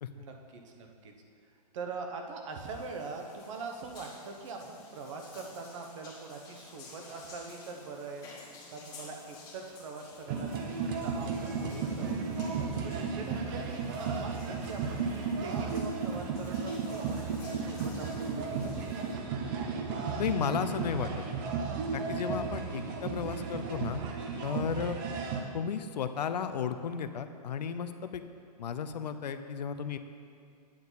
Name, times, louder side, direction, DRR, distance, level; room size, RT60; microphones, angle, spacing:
voice 1, 0.1-1.1 1.7-8.3 8.7-12.2 12.8-19.0 24.7-24.9, right 4 dB, 50° right, 3 dB, 1.1 m, -43 dB
sound 1, 2.6-19.1, left 3 dB, 20° left, 1.6 m, -53 dB
sound 2, 10.3-25.4, right 5 dB, 30° right, 0.7 m, -34 dB
voice 2, 20.2-21.1 21.9-24.0 24.4-25.0 25.5-28.2 28.6-30.0, left 7 dB, 80° left, 9 dB, 0.6 m, -34 dB
8.8 x 7.4 x 4.0 m, 2.3 s
hypercardioid pair, 155°, 21 cm